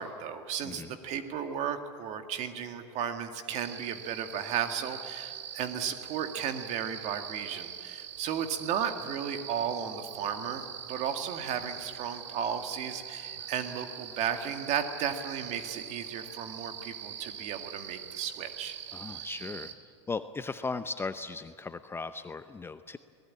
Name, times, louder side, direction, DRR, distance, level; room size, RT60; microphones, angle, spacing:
voice 1, 0.0-18.8, right 8 dB, 50° right, 6 dB, 2.0 m, -34 dB
voice 2, 0.6-1.0 18.9-19.7 20.1-23.0, left 4 dB, 15° left, 11 dB, 0.7 m, -37 dB
sound 1, 3.6-19.7, right 10 dB, 75° right, 2.4 m, -43 dB
24.0 x 19.5 x 8.6 m, 2.2 s
hypercardioid pair, 95°, 15 cm